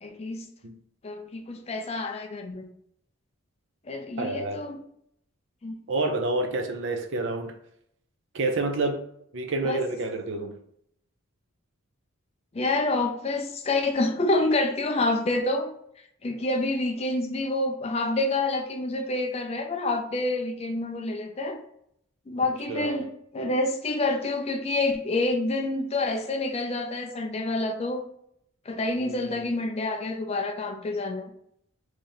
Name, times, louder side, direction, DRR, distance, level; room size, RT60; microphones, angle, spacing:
voice 1, 0.0-0.5 1.0-2.7 3.9-4.8 5.6-5.8 9.6-9.8 12.5-15.7 16.2-21.6 22.3-28.0 28.7-31.3, left 2 dB, 30° left, 4 dB, 0.4 m, -28 dB
voice 2, 4.2-4.6 5.9-7.5 8.3-9.0 9.3-10.5 22.7-23.0 29.0-29.4, right 2 dB, 55° right, 4 dB, 0.5 m, -28 dB
3.1 x 2.7 x 3.8 m, 0.70 s
head